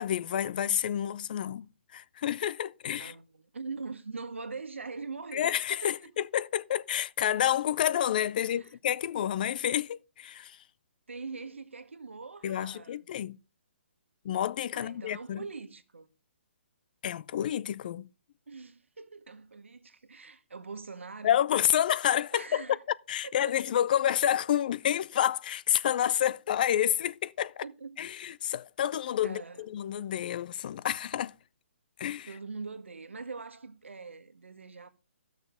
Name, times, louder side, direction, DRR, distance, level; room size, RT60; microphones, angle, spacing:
voice 1, 0.0-1.7 1.9-3.1 5.3-10.6 12.4-13.4 14.2-15.4 17.0-18.1 21.2-22.6 23.1-27.6 28.0-31.3 32.0-32.3, left 10 dB, 45° left, 0.5 m, -29 dB
voice 2, 3.0-5.6 5.8-6.1 8.4-8.8 11.1-13.1 14.7-16.1 18.5-21.4 22.3-22.8 23.2-23.5 27.6-28.0 29.2-29.6 32.3-34.9, right 4 dB, 85° right, 1.4 m, -42 dB
13.5 x 6.5 x 5.0 m
hypercardioid pair, 145°, 6 cm